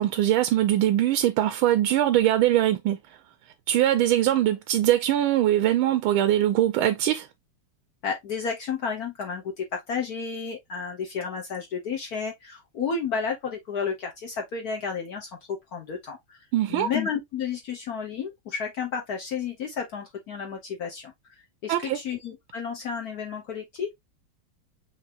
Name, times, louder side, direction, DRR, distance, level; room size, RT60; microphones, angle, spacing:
voice 1, 0.0-3.0 3.7-7.3 16.5-16.9 21.7-22.0, right 12 dB, 90° right, 1.4 m, -22 dB
voice 2, 8.0-16.4 16.7-21.3 21.6-23.9, left 6 dB, 55° left, 1.2 m, -32 dB
5.8 x 3.3 x 2.8 m
omnidirectional pair, 2.2 m